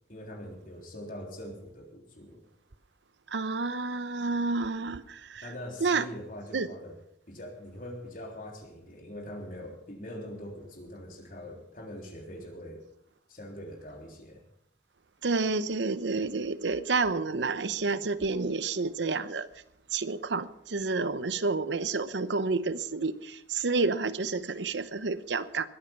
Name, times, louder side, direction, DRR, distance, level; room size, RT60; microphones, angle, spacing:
voice 1, 0.1-2.4 5.4-7.0 7.3-12.8 13.3-14.4, left 1 dB, 50° left, 1 dB, 3.5 m, -43 dB
voice 2, 3.3-5.5 5.8-6.1 6.5-6.7 15.2-19.5 19.9-25.7, right 3 dB, 90° right, 14 dB, 0.9 m, -29 dB
21.0 x 8.6 x 5.9 m, 0.73 s
head